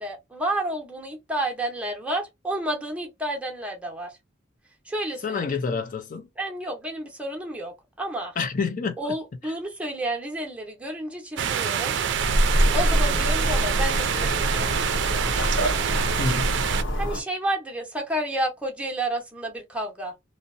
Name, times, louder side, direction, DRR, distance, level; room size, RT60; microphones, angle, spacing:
voice 1, 0.0-4.2 4.8-5.4 6.4-8.4 9.0-12.0 12.7-14.7 17.0-20.1, right 1 dB, 5° right, 0.7 m, -30 dB
voice 2, 5.2-6.3 8.4-9.0 9.4-9.5 16.2-16.6, left 4 dB, 45° left, 0.4 m, -28 dB
sound 1, 11.4-16.8, right 8 dB, 70° right, 0.4 m, -26 dB
sound 2, 12.1-17.2, equal, 90° left, 0.8 m, -25 dB
2.7 x 2.0 x 2.4 m
head